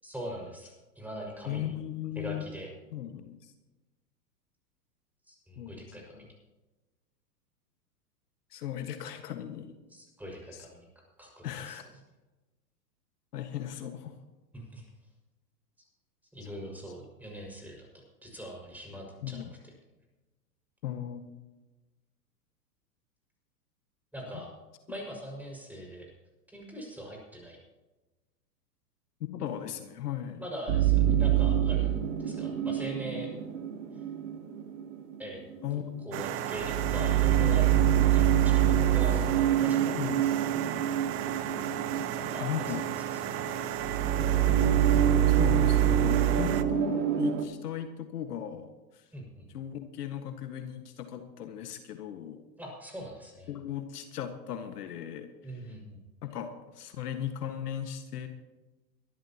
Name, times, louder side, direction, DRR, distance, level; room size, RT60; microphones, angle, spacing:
voice 1, 0.0-1.7 2.1-2.7 5.3-6.3 9.9-10.9 11.2-11.8 14.5-14.8 16.3-17.9 18.2-19.7 24.1-24.5 24.9-26.1 26.5-27.6 30.4-33.3 33.9-34.0 35.2-35.4 36.0-37.7 38.0-40.1 42.2-42.8 43.0-43.7 49.1-49.5 52.6-53.5 55.4-56.0, equal, 5° right, -1 dB, 5.8 m, -42 dB
voice 2, 1.4-2.4 2.9-3.5 5.6-6.3 8.5-9.7 10.5-10.6 11.4-11.8 13.3-14.1 19.2-19.5 20.8-21.2 29.3-30.4 35.6-36.1 39.9-40.2 42.4-42.8 45.4-49.0 49.5-52.4 53.5-55.6 56.2-58.3, left 10 dB, 65° left, 7 dB, 1.7 m, -37 dB
sound 1, 30.7-35.7 36.2-36.3 36.6-47.4, right 10 dB, 50° right, 2.6 m, -26 dB
sound 2, 36.1-46.6, right 10 dB, 25° right, 0.8 m, -35 dB
22.5 x 13.0 x 3.0 m, 1.1 s
hypercardioid pair, 110°, 49 cm